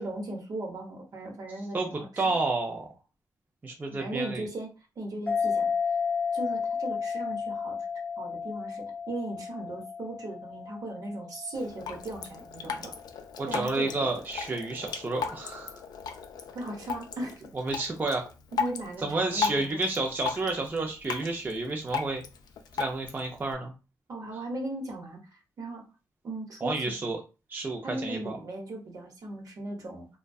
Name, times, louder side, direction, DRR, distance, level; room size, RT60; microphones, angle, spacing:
voice 1, 0.0-2.3 3.9-5.7 6.3-7.8 8.2-13.0 13.5-13.9 16.5-17.5 18.5-19.8 24.1-25.8 26.2-26.9 27.8-30.1, right 1 dB, 60° right, 1 dB, 0.8 m, -37 dB
voice 2, 1.7-2.9 3.6-4.5 13.4-15.8 17.5-18.3 19.0-22.2 22.8-23.7 26.6-27.2 27.5-28.4, right 2 dB, 25° right, 1 dB, 0.4 m, -30 dB
sound 1, 5.3-12.3, left 6 dB, 25° left, 0.5 m, -32 dB
Drip, 11.5-23.5, left 6 dB, 80° left, 0.3 m, -37 dB
2.5 x 2.1 x 2.3 m, 0.31 s
cardioid pair, 95°, 7 cm